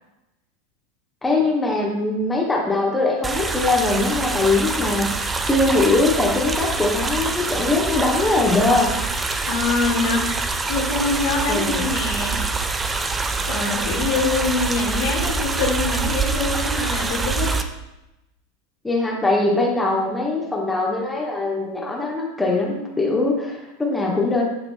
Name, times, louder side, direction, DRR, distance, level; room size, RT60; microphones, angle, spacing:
voice 1, 1.2-5.1 5.5-8.9 11.5-11.9 18.8-24.4, left 2 dB, 10° left, -3 dB, 1.3 m, -21 dB
sound 1, 3.2-17.6, right 3 dB, 15° right, 0.5 m, -25 dB
voice 2, 9.4-10.3 10.7-12.4 13.4-17.5, left 3 dB, 60° left, -2 dB, 1.8 m, -24 dB
10.5 x 4.8 x 2.3 m, 0.96 s
figure-of-eight pair, 80°, 0 cm